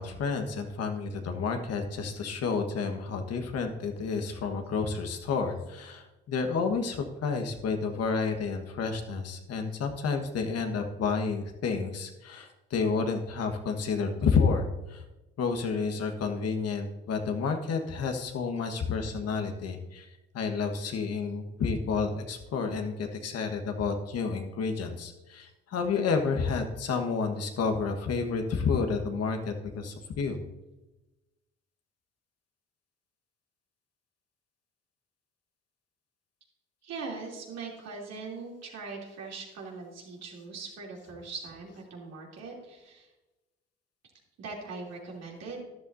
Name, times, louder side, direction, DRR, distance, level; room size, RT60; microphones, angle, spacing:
voice 1, 0.0-15.0 15.4-30.4, left 5 dB, 55° left, 5 dB, 1.5 m, -30 dB
voice 2, 36.8-43.1 44.4-45.6, right 4 dB, 60° right, -2 dB, 3.2 m, -41 dB
13.0 x 11.0 x 2.7 m, 1.1 s
hypercardioid pair, 60°, 30 cm